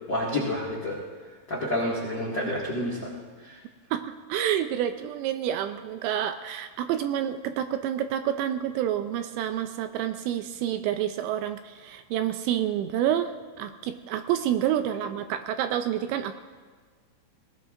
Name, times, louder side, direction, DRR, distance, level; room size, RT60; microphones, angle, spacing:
voice 1, 0.1-1.0 1.5-3.0 3.4-3.6, left 1 dB, 70° left, -5 dB, 1.0 m, -29 dB
voice 2, 3.9-16.4, right 10 dB, 85° right, 8 dB, 2.6 m, -28 dB
20.5 x 20.0 x 2.5 m, 1.5 s
omnidirectional pair, 5.5 m